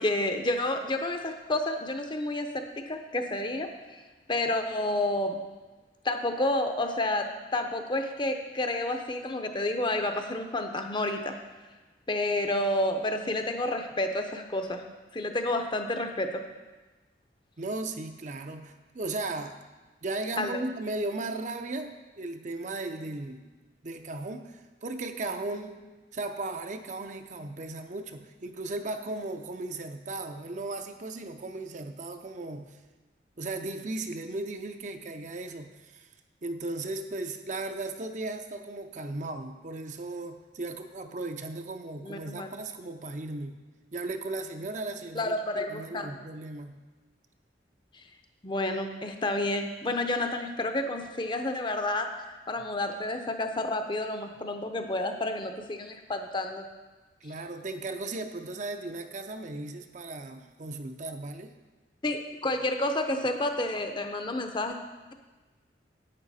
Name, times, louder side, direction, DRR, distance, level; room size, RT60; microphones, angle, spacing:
voice 1, 0.0-4.0 4.3-5.4 6.0-11.4 12.1-14.8 15.1-16.4 20.4-20.6 42.0-42.5 45.1-46.2 48.4-56.6 62.0-64.8, left 1 dB, 25° left, 6 dB, 0.7 m, -30 dB
voice 2, 17.6-19.6 20.0-23.5 23.8-25.8 26.1-32.8 33.4-36.1 36.4-43.6 43.9-46.8 57.2-61.5, right 2 dB, 40° right, 6 dB, 0.6 m, -36 dB
10.5 x 8.7 x 4.2 m, 1.2 s
head